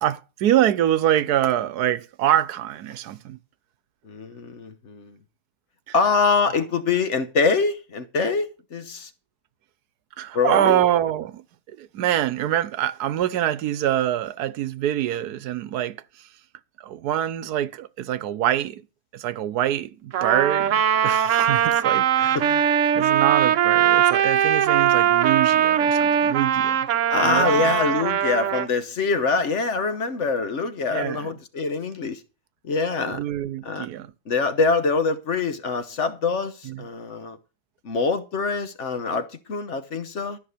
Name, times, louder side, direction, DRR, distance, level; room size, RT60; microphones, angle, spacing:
voice 1, 0.0-3.4 5.9-6.0 10.2-11.4 11.7-16.0 16.8-18.8 19.1-22.6 22.9-26.9 27.2-27.7 30.9-31.3 33.1-34.1 36.6-36.9, right 12 dB, 90° right, 1.3 m, -25 dB
voice 2, 4.0-5.2 5.9-9.1 10.3-10.8 27.1-32.2 32.6-33.2 33.6-33.9 34.3-37.4 37.8-40.4, left 4 dB, 55° left, 1.2 m, -24 dB
Trumpet, 20.1-28.7, right 9 dB, 60° right, 1.0 m, -20 dB
13.5 x 5.9 x 6.6 m
omnidirectional pair, 1.6 m